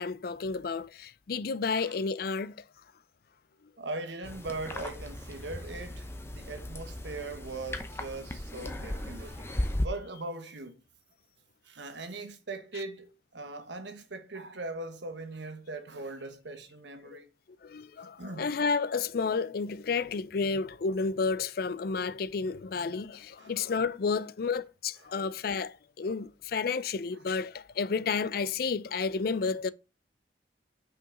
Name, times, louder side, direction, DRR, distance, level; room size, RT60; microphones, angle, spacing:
voice 1, 0.0-2.6 17.1-17.2 17.6-29.7, left 5 dB, 55° left, 0.4 m, -31 dB
voice 2, 3.8-10.8 11.6-17.3 18.2-18.5 23.4-23.5, right 2 dB, 80° right, 1.2 m, -40 dB
sound 1, 4.2-9.9, left 1 dB, 15° left, 0.7 m, -36 dB
5.9 x 5.0 x 3.7 m
head